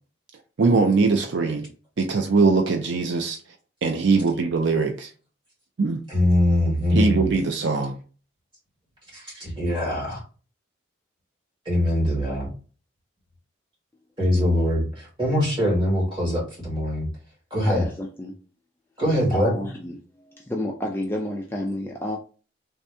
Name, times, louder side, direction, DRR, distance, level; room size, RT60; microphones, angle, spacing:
voice 1, 0.6-1.7 2.0-3.4 3.8-5.1 5.8-6.0 6.9-8.0, right 4 dB, 60° right, 0.4 m, -21 dB
voice 2, 6.1-7.3 9.1-10.2 11.7-12.5 14.2-17.1 17.5-17.8 19.0-19.5, left 1 dB, 25° right, 2.0 m, -22 dB
voice 3, 17.6-18.4 19.3-22.2, left 1 dB, 10° left, 0.4 m, -30 dB
3.4 x 2.7 x 3.3 m
head